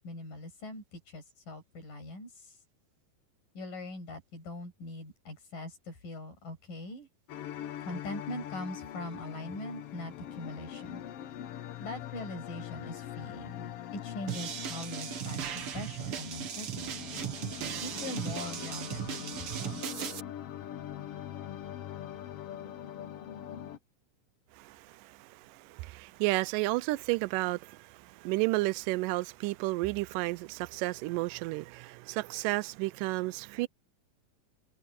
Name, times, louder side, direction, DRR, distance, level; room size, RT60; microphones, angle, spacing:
voice 1, 0.0-2.6 3.6-7.1 7.8-11.0 11.8-17.2 17.8-19.8, left 2 dB, 85° left, 9.0 m, -42 dB
sound 1, 7.3-23.8, left 11 dB, 65° left, 1.5 m, -43 dB
sound 2, 14.3-20.2, right 9 dB, 55° right, 1.9 m, -37 dB
voice 2, 24.5-33.7, right 21 dB, 85° right, 2.2 m, -32 dB
omnidirectional pair, 3.7 m